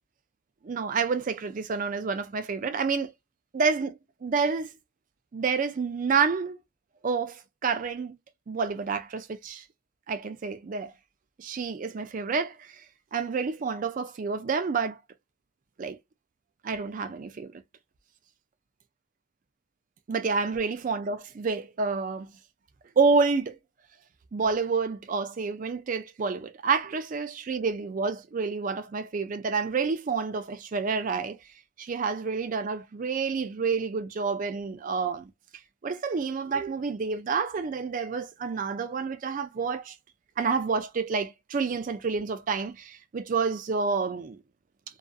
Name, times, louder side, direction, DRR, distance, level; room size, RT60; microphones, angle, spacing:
voice 1, 0.6-3.1 3.5-4.7 5.3-6.6 7.0-8.1 8.5-9.6 10.1-10.9 11.4-12.8 13.1-15.0 15.8-16.0 16.6-17.6 20.1-22.3 23.0-23.6 24.3-31.4 31.8-35.3 35.8-40.0 40.4-44.4, right 5 dB, 40° right, 0.3 m, -29 dB
2.4 x 2.4 x 2.3 m
head